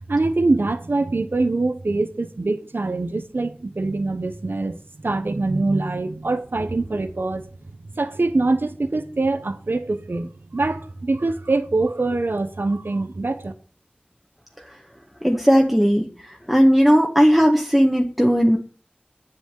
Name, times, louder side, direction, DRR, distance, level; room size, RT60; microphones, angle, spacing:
voice 1, 0.1-7.4 8.0-13.5, right 2 dB, 85° right, 1.1 m, -24 dB
voice 2, 15.2-16.1 16.5-18.6, equal, ahead, 1.6 m, -16 dB
9.1 x 7.9 x 7.5 m
wide cardioid pair, 40°, 4 cm